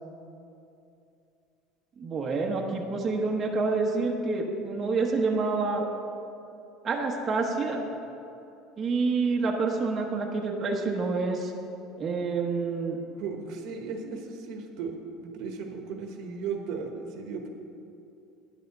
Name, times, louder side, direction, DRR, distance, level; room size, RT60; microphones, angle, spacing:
voice 1, 2.0-5.9 6.8-7.8 8.8-11.5 12.0-13.0, right 3 dB, 25° right, 0 dB, 0.9 m, -27 dB
voice 2, 13.2-17.5, right 5 dB, 65° right, 4 dB, 1.1 m, -36 dB
9.9 x 5.6 x 7.8 m, 2.7 s
cardioid pair, 150°, 0 cm